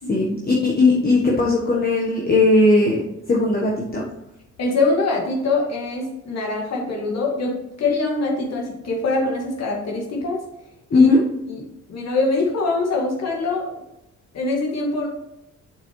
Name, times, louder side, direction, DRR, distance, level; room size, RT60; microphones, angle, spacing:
voice 1, 0.1-3.0 3.3-4.1 10.9-11.2, left 2 dB, 30° left, -2 dB, 1.2 m, -17 dB
voice 2, 4.6-7.5 7.8-10.4 10.9-11.1 11.9-13.8 14.3-15.1, left 3 dB, 60° left, -1 dB, 2.0 m, -23 dB
7.2 x 6.4 x 3.2 m, 0.87 s
cardioid pair, 90°, 30 cm